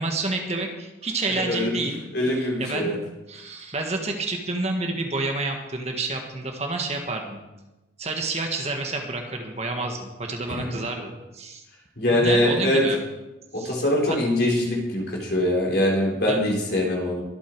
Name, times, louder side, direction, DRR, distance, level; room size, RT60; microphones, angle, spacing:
voice 1, 0.0-2.0 2.4-3.0 3.3-7.4 8.0-11.6 12.1-13.0 13.5-14.2 16.3-16.4, right 2 dB, 35° right, 3 dB, 1.6 m, -29 dB
voice 2, 2.1-2.9 12.0-12.8 13.6-17.2, left 1 dB, 55° left, -1 dB, 4.0 m, -23 dB
22.5 x 8.6 x 4.7 m, 1.0 s
head